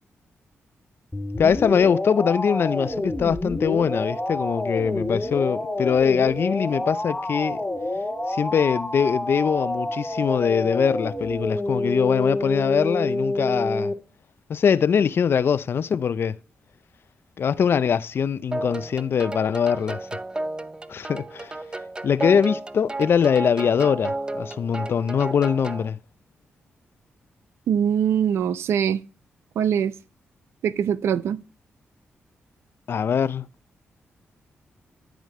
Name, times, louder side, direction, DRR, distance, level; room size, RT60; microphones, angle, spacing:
sound 1, 1.1-13.9, left 1 dB, 10° left, 1.5 m, -28 dB
voice 1, 1.4-7.6 8.3-13.9 14.5-16.4 17.4-20.1 20.9-21.5 22.0-26.0 32.9-33.5, left 7 dB, 60° left, 0.4 m, -22 dB
sound 2, 18.5-25.9, right 2 dB, 20° right, 0.6 m, -32 dB
voice 2, 27.7-29.0 29.6-29.9 30.6-31.4, right 8 dB, 85° right, 0.4 m, -22 dB
12.5 x 5.1 x 3.2 m
cardioid pair, 70°, 4 cm